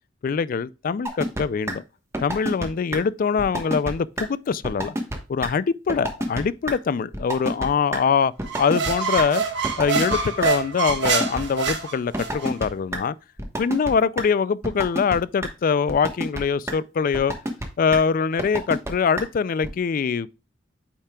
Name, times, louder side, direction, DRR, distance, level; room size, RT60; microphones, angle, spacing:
voice 1, 0.2-1.8 2.2-4.9 5.3-8.3 8.6-9.4 9.8-13.2 13.6-17.3 17.8-20.4, left 6 dB, 50° left, 0.3 m, -23 dB
sound 1, 1.1-1.4 1.7-1.8 2.1-2.7 2.9-3.0 3.4-3.9 4.2-4.3 4.6-5.2 5.4-5.5 5.9-6.4 6.7-6.8 7.1-7.7 7.9-8.0 8.4-9.2 9.6-10.5 10.9-11.7 12.1-12.7 12.9-13.0 13.4-13.9 14.2-14.3 14.6-15.2 15.4-15.5 15.9-16.4 16.7-16.8 17.1-17.7 17.9-18.0 18.4-18.9 19.2-19.3 19.6-19.7, right 1 dB, 15° right, 1.2 m, -27 dB
sound 2, 8.4-12.5, right 5 dB, 70° right, 1.3 m, -26 dB
8.4 x 5.6 x 2.3 m
head